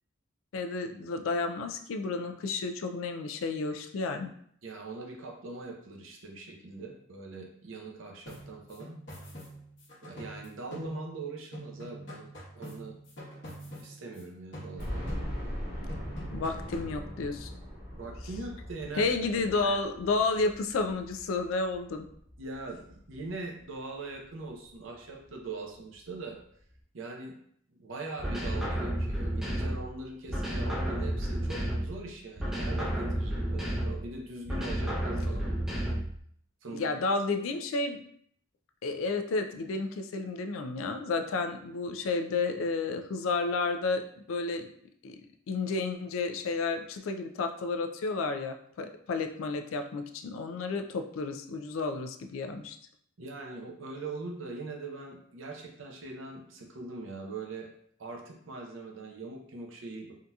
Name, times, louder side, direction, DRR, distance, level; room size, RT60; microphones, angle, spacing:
voice 1, 0.5-4.3 16.3-17.5 19.0-22.0 36.7-38.0 38.8-44.0 44.3-44.7 45.0-45.2 45.5-52.8, left 3 dB, 85° left, 6 dB, 0.4 m, -31 dB
voice 2, 4.6-9.0 10.0-12.3 12.5-13.0 13.8-15.1 17.9-19.2 19.6-19.8 22.4-26.4 26.9-27.3 27.7-35.5 36.6-36.9 53.2-57.7 58.0-60.1, right 3 dB, 75° right, 1 dB, 0.7 m, -41 dB
sound 1, 8.3-11.3 11.5-14.2 14.5-15.6 15.9-17.0, equal, 60° left, 1.1 m, -46 dB
sound 2, 14.8-23.7 24.2-24.3 24.6-24.7 25.9-26.0 26.3-26.4, equal, 50° right, 1.2 m, -40 dB
sound 3, 28.2-29.9 30.3-32.0 32.4-34.1 34.4-36.2, right 1 dB, 5° right, 0.6 m, -31 dB
3.7 x 2.7 x 2.3 m, 0.65 s
head